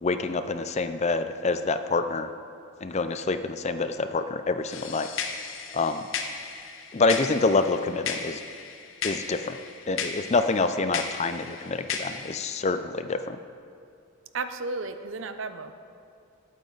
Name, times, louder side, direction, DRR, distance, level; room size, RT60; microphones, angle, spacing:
voice 1, 0.0-2.3 2.8-5.1 5.7-6.1 6.9-8.4 9.0-9.6 9.9-13.4, left 3 dB, 30° left, 10 dB, 0.4 m, -26 dB
sound 1, 4.7-12.4, left 5 dB, 65° left, 1.0 m, -35 dB
voice 2, 14.3-15.7, right 3 dB, 60° right, 9 dB, 0.7 m, -33 dB
19.5 x 9.0 x 4.0 m, 2.5 s
head